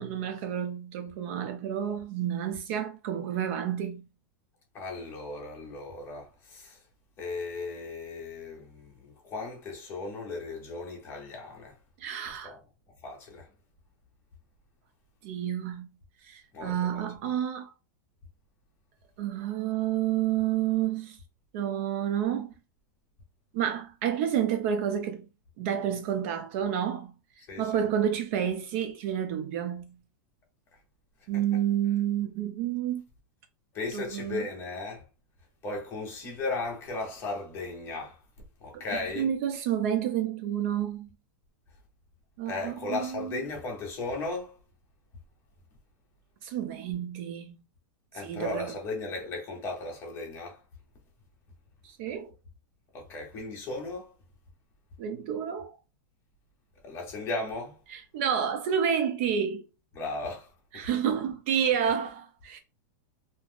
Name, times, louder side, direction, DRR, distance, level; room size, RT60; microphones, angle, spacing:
voice 1, 0.0-4.0 12.0-12.5 15.2-15.9 16.2-17.7 19.2-21.2 21.5-22.5 23.5-25.3 25.6-27.1 27.6-30.0 31.3-33.0 33.9-34.5 38.7-41.1 42.4-43.4 46.4-47.6 48.2-48.7 51.8-52.3 55.0-55.8 57.9-59.7 60.7-62.6, right 9 dB, 40° right, 0.4 m, -30 dB
voice 2, 4.7-6.9 7.2-11.8 12.3-12.6 13.0-13.5 16.5-17.0 27.5-27.8 31.3-31.6 33.7-35.0 35.6-38.2 38.6-39.3 42.4-44.6 48.1-50.6 52.9-54.1 56.8-57.8 59.9-60.9, left 3 dB, 25° left, 1.0 m, -36 dB
2.7 x 2.4 x 3.4 m
supercardioid pair, 165°, 10 cm